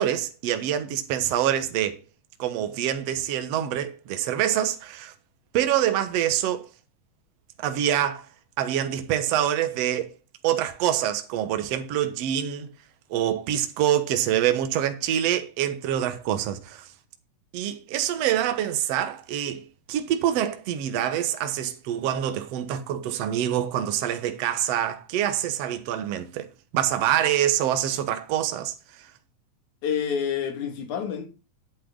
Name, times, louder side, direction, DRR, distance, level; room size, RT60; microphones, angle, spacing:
voice 1, 0.0-2.0 2.4-5.1 5.5-6.7 7.6-8.3 8.6-10.1 10.4-12.7 13.1-16.9 17.5-26.5 26.7-29.1, right 11 dB, 60° right, 1.9 m, -26 dB
voice 2, 29.8-31.3, left 7 dB, 60° left, 3.2 m, -28 dB
10.0 x 8.5 x 3.8 m
omnidirectional pair, 4.1 m